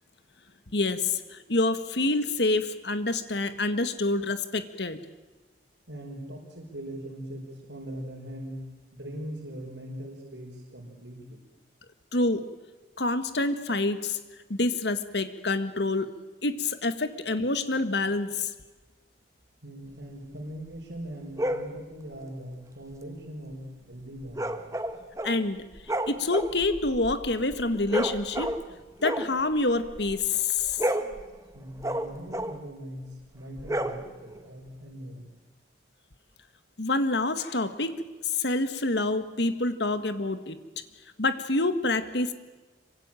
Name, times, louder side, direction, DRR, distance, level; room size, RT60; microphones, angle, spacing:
voice 1, 0.7-5.0 12.1-12.5 13.0-14.2 14.5-16.1 16.4-18.5 25.2-25.6 26.1-28.5 29.0-30.8 36.8-40.6 41.2-42.3, left 2 dB, 70° left, 10 dB, 1.7 m, -27 dB
voice 2, 5.9-11.4 19.6-24.7 31.5-35.3, equal, 85° right, -2 dB, 5.4 m, -41 dB
sound 1, 21.4-21.7 24.3-25.4 25.7-28.7 29.0-30.2 30.6-32.7 33.6-34.4, right 1 dB, 15° right, 1.4 m, -31 dB
26.5 x 24.0 x 9.1 m, 1.2 s
head